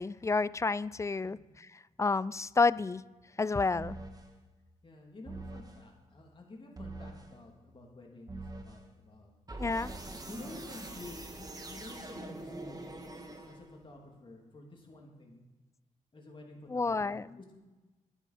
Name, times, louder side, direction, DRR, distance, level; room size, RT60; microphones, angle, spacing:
voice 1, 0.0-1.4 2.0-3.0 3.4-4.0 9.6-9.9 16.7-17.4, left 4 dB, 20° left, 19 dB, 0.3 m, -29 dB
sound 1, 3.7-4.3 5.3-5.8 6.8-7.3 8.3-8.8 9.5-13.9, right 2 dB, 25° right, 1.5 m, -44 dB
voice 2, 4.8-9.3 10.2-12.8 13.5-15.4 16.1-17.6, left 2 dB, 35° left, 0 dB, 3.0 m, -51 dB
11.0 x 9.8 x 5.0 m, 1.2 s
cardioid pair, 75°, 14 cm